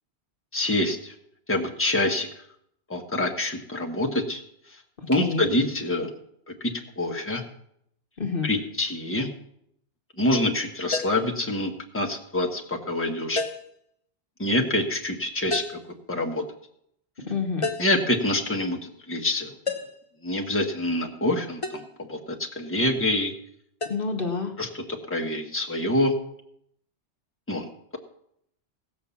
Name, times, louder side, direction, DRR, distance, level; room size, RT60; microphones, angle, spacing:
voice 1, 0.5-1.1 1.5-2.3 2.9-4.4 4.7-4.8 5.1-6.1 6.5-7.4 8.4-9.3 10.2-13.4 14.4-15.6 16.1-16.4 17.8-19.5 20.2-21.8 22.1-22.2 22.5-23.3 24.6-26.1 27.5-27.7, left 1 dB, 10° left, 1 dB, 1.4 m, -26 dB
voice 2, 5.0-5.5 8.2-8.5 17.2-17.7 23.9-24.5, left 4 dB, 55° left, 4 dB, 1.5 m, -28 dB
sound 1, 10.9-11.3 13.4-13.8 15.5-15.9 17.6-18.0 19.7-20.1 21.6-21.9 23.8-24.0, left 3 dB, 30° left, 0.9 m, -30 dB
17.0 x 6.1 x 7.1 m, 0.73 s
omnidirectional pair, 1.1 m